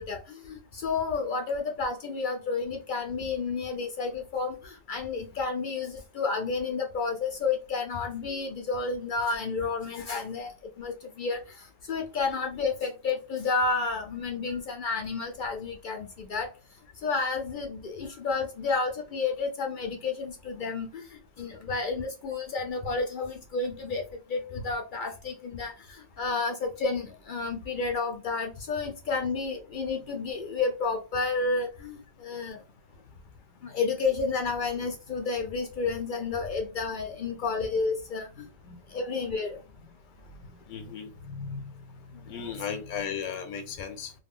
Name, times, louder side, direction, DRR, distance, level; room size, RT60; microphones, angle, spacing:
voice 1, 0.0-10.5 10.8-11.4 11.9-16.5 17.0-20.9 21.4-24.0 24.3-32.6 33.6-38.5 38.9-39.6 42.4-42.5, left 4 dB, 60° left, 0.5 m, -31 dB
voice 2, 40.3-42.0 42.3-44.1, left 6 dB, 90° left, 0.9 m, -37 dB
2.3 x 2.2 x 3.5 m
omnidirectional pair, 1.3 m